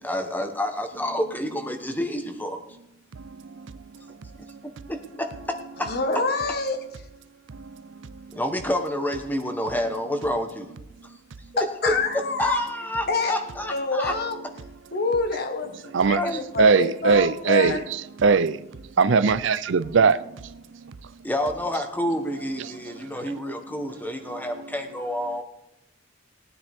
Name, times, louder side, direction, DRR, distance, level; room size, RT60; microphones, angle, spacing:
voice 1, 0.0-2.6 4.9-5.9 8.3-10.7 11.5-11.9 12.4-14.1 16.2-16.4 21.2-25.4, left 1 dB, 10° left, 1.3 m, -28 dB
voice 2, 5.9-6.9 11.8-12.6 13.1-14.4 14.9-17.8, left 3 dB, 55° left, 1.6 m, -26 dB
voice 3, 7.5-8.4 15.9-16.2 16.6-18.7 19.0-20.6 20.8-20.9 22.6-23.3 24.3-24.5, right 5 dB, 65° right, 0.5 m, -22 dB
19.0 x 9.5 x 3.6 m
head